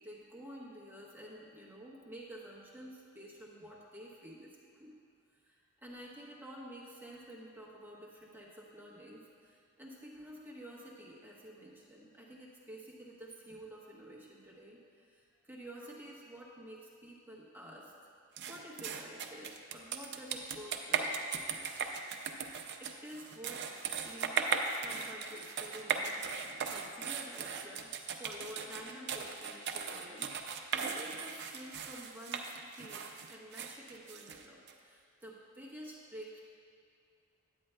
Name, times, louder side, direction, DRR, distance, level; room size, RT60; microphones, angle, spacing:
voice 1, 0.0-4.9 5.4-17.9 18.5-21.1 21.5-21.7 22.1-22.3 22.8-23.7 24.0-26.2 26.7-32.4 32.7-36.4, equal, 10° right, -5 dB, 1.0 m, -50 dB
sound 1, 18.4-34.7, right 6 dB, 55° right, 0.5 m, -38 dB
9.8 x 8.4 x 2.2 m, 2.3 s
head